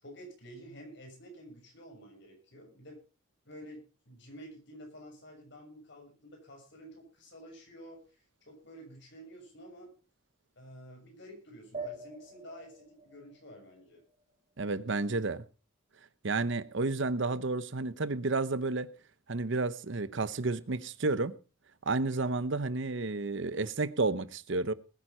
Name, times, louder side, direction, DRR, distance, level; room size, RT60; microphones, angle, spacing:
voice 1, 0.0-3.0 3.4-8.0 8.4-9.9 10.5-14.0, equal, 55° left, 6.6 m, -50 dB
sound 1, 11.7-14.7, right 2 dB, 30° right, 2.9 m, -45 dB
voice 2, 14.6-15.4 16.2-18.9 19.3-21.3 21.9-24.7, right 3 dB, 60° right, 0.8 m, -31 dB
20.0 x 9.5 x 4.3 m
head